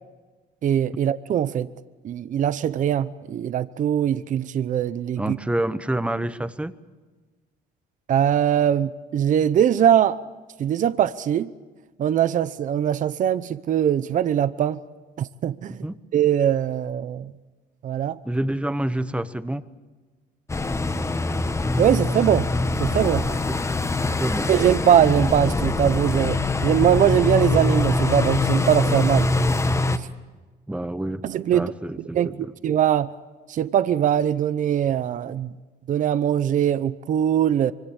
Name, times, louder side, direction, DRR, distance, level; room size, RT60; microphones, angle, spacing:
voice 1, 0.6-1.7 2.0-5.4 8.1-10.2 10.6-11.5 12.0-14.8 15.2-15.8 16.1-17.3 17.8-18.2 21.8-22.5 22.8-23.3 24.5-29.3 30.0-30.1 31.2-31.7 32.1-32.3 32.6-33.1 33.5-35.5 35.9-37.7, right 10 dB, 50° right, 0.8 m, -21 dB
voice 2, 5.2-6.7 15.8-15.9 18.2-19.6 23.2-23.6 24.0-24.5 30.7-31.2 31.5-32.5, right 1 dB, 5° right, 1.1 m, -28 dB
sound 1, 20.5-30.0, left 3 dB, 15° left, 1.3 m, -23 dB
25.0 x 25.0 x 7.2 m
cardioid pair, 110°, 17 cm